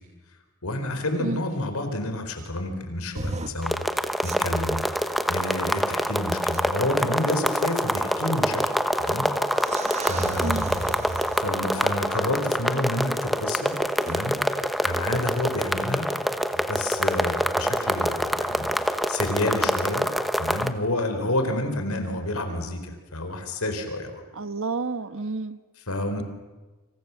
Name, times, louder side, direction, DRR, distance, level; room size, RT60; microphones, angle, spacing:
voice 1, 0.6-8.6 9.0-9.3 9.6-10.9 11.4-16.1 16.5-20.1 20.4-24.2 25.8-26.2, left 1 dB, 75° left, 6 dB, 4.6 m, -29 dB
sound 1, 3.1-3.5 4.2-4.6 5.9-6.0 6.5-6.6 7.7-7.8 9.1-9.2 9.5-11.9 14.0-14.2, right 2 dB, 30° right, 1.3 m, -34 dB
sound 2, 3.6-20.7, equal, ahead, 1.1 m, -26 dB
voice 2, 10.4-10.7 24.4-25.6, right 3 dB, 65° right, 12 dB, 1.3 m, -30 dB
29.5 x 26.5 x 7.2 m, 1.2 s
head